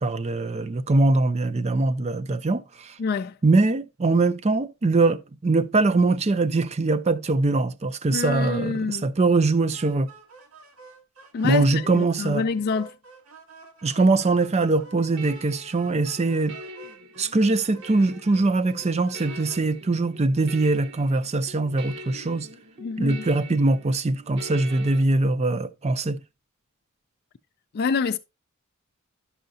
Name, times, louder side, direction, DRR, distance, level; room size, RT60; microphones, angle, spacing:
voice 1, 0.0-3.0 3.4-10.1 11.4-12.4 13.8-16.6 17.2-22.5 23.0-26.2, right 3 dB, 30° right, 0.5 m, -22 dB
voice 2, 3.0-3.4 8.1-9.0 11.3-12.9 22.8-23.3 27.7-28.2, left 5 dB, 45° left, 0.3 m, -27 dB
sound 1, 9.4-19.6, right 3 dB, 80° right, 1.6 m, -50 dB
sound 2, 14.8-25.0, right 1 dB, 60° right, 1.1 m, -44 dB
11.5 x 5.7 x 2.7 m
head